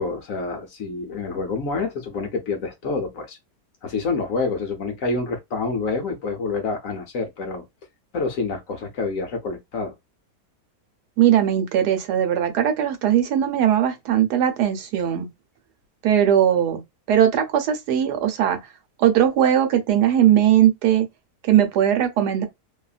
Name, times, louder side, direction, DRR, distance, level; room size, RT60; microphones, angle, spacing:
voice 1, 0.0-3.4 3.8-7.6 8.1-9.9, left 4 dB, 65° left, 0.9 m, -27 dB
voice 2, 11.2-15.3 16.0-16.8 17.1-18.6 19.0-21.1 21.5-22.5, right 10 dB, 75° right, 1.2 m, -19 dB
2.8 x 2.4 x 2.3 m
omnidirectional pair, 1.8 m